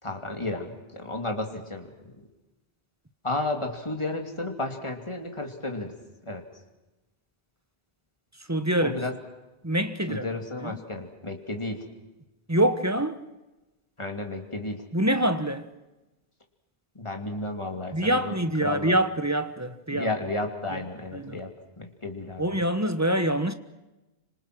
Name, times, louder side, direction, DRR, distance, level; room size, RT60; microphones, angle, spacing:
voice 1, 0.0-2.3 3.2-5.9 6.3-6.4 8.8-9.1 10.1-11.8 14.0-14.8 16.9-18.3 18.6-18.9 19.9-22.5, left 2 dB, 30° left, 2.9 m, -33 dB
voice 2, 8.5-9.0 9.6-10.3 10.6-10.8 12.5-13.2 14.9-15.7 17.9-20.1 20.7-20.8 21.1-21.4 22.4-23.5, right 1 dB, 15° right, 1.2 m, -25 dB
27.0 x 25.5 x 6.2 m
omnidirectional pair, 1.0 m